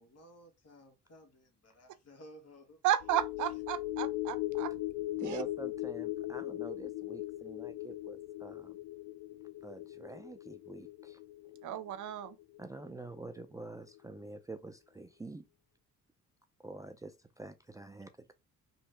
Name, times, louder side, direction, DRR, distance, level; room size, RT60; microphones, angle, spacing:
voice 1, 0.0-2.8, equal, 55° left, 1.6 m, -56 dB
voice 2, 2.8-4.7 5.2-5.4 11.6-12.4, right 12 dB, 75° right, 0.6 m, -33 dB
sound 1, 3.0-13.6 14.0-14.1, left 17 dB, 80° left, 0.5 m, -39 dB
voice 3, 5.2-8.8 9.6-11.2 12.6-15.4 16.6-18.3, right 2 dB, 10° right, 0.4 m, -47 dB
3.1 x 2.7 x 4.5 m
cardioid pair, 90°, 30 cm